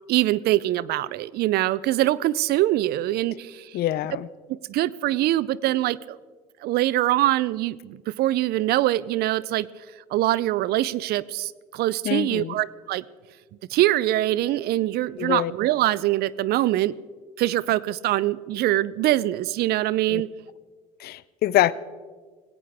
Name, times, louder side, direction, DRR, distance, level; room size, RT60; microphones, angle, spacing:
voice 1, 0.1-3.7 4.5-6.2 6.6-9.7 10.1-13.0 13.7-17.0 17.4-20.3, right 15 dB, 60° right, 21 dB, 0.5 m, -23 dB
voice 2, 3.7-4.3 12.0-12.6 15.2-15.5 20.1-20.2 21.0-21.7, left 14 dB, 60° left, 19 dB, 0.6 m, -24 dB
19.5 x 17.0 x 3.5 m, 1.5 s
hypercardioid pair, 70°, 19 cm